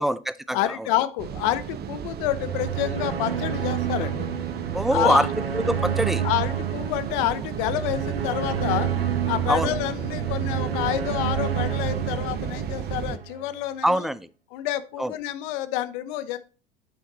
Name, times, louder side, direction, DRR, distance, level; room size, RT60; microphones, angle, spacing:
voice 1, 0.0-0.6 4.7-5.3 5.5-6.2 9.5-9.7 13.8-14.3 15.0-15.1, right 1 dB, ahead, 14 dB, 0.5 m, -23 dB
voice 2, 0.5-4.3 4.9-5.3 6.2-8.9 9.3-14.1 14.5-16.4, left 13 dB, 60° left, 13 dB, 0.9 m, -28 dB
sound 1, 1.2-13.2, right 9 dB, 35° right, 0.9 m, -34 dB
sound 2, 2.2-13.5, right 8 dB, 85° right, 1.1 m, -29 dB
8.4 x 5.9 x 4.0 m, 0.34 s
figure-of-eight pair, 75°, 29 cm